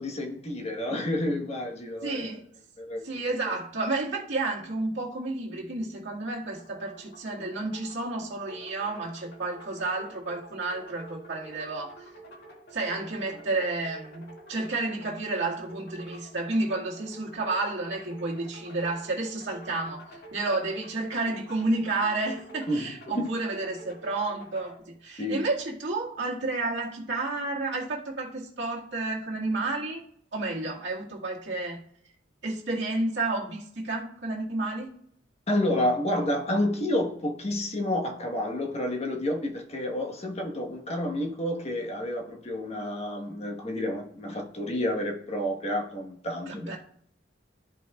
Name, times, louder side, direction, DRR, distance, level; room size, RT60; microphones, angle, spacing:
voice 1, 0.0-2.3 2.8-3.0 22.7-23.3 25.2-25.4 35.5-46.8, left 1 dB, 35° left, 1.3 m, -30 dB
voice 2, 2.0-2.4 3.0-11.9 12.7-30.0 30.3-31.9 32.4-34.9 46.6-46.8, right 2 dB, 70° right, 2.1 m, -31 dB
sound 1, 6.5-24.8, right 1 dB, 60° left, 2.1 m, -49 dB
14.0 x 5.3 x 2.4 m
head